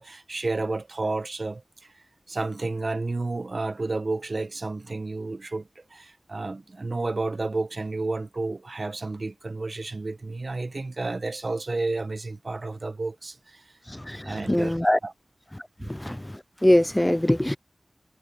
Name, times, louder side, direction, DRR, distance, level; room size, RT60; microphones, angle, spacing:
voice 1, 0.0-1.6 2.3-13.6 14.2-15.1 15.8-15.9, right 3 dB, 60° right, 1.3 m, -31 dB
voice 2, 13.9-15.0 15.9-16.2 16.6-17.6, left 1 dB, 15° left, 0.3 m, -22 dB
wide cardioid pair, 50°, 0 cm